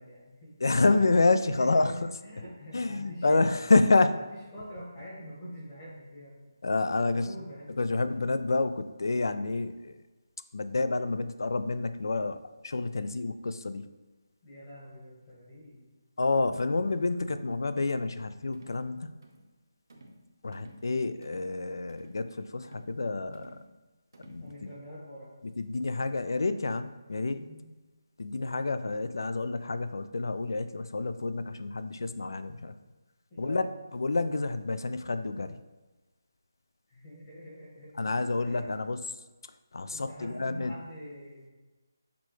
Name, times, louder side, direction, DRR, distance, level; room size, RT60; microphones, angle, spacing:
voice 1, 0.0-0.5 1.4-3.7 4.2-6.5 7.0-8.1 14.4-15.9 24.4-25.3 27.3-27.7 33.3-33.8 36.9-38.1 38.4-38.7 39.9-41.5, equal, 20° left, -6 dB, 1.1 m, -45 dB
voice 2, 0.6-1.9 2.7-4.2 6.6-7.2 7.8-10.0 10.5-12.4 12.6-13.8 16.2-19.1 20.4-23.6 24.3-24.5 25.6-27.4 28.2-32.7 33.4-33.6 33.9-35.5 38.0-39.0 39.7-40.7, left 3 dB, 70° left, 11 dB, 0.3 m, -28 dB
sound 1, 17.9-18.2 18.5-18.8 19.2-19.5 19.9-20.2 20.5-20.9 21.2-21.5 21.9-22.2 22.6-22.9 23.3-23.7 24.1-24.5, right 1 dB, 60° right, 0.7 m, -52 dB
6.0 x 2.3 x 3.0 m, 1.2 s
figure-of-eight pair, 170°, 2 cm